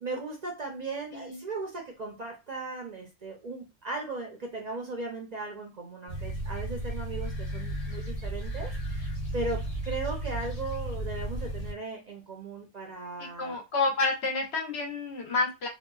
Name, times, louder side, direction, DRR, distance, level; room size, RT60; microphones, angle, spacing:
voice 1, 0.0-13.6, right 3 dB, 50° right, 1 dB, 0.5 m, -37 dB
sound 1, 6.1-11.7, right 1 dB, 40° left, 0.7 m, -34 dB
voice 2, 13.2-15.7, left 3 dB, 70° left, 1 dB, 1.0 m, -29 dB
2.8 x 2.2 x 2.3 m, 0.24 s
omnidirectional pair, 1.2 m